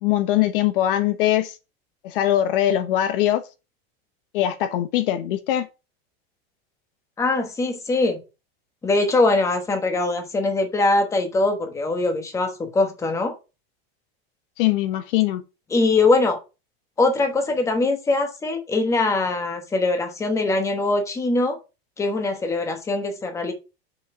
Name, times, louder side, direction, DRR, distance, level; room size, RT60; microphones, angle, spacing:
voice 1, 0.0-1.6 2.0-3.4 4.3-5.7 14.6-15.4, left 12 dB, 60° left, 0.9 m, -21 dB
voice 2, 7.2-8.2 8.8-13.4 15.7-16.4 17.0-21.6 22.0-23.5, left 2 dB, 10° left, 1.2 m, -22 dB
6.4 x 5.3 x 4.9 m
supercardioid pair, 165°, 30 cm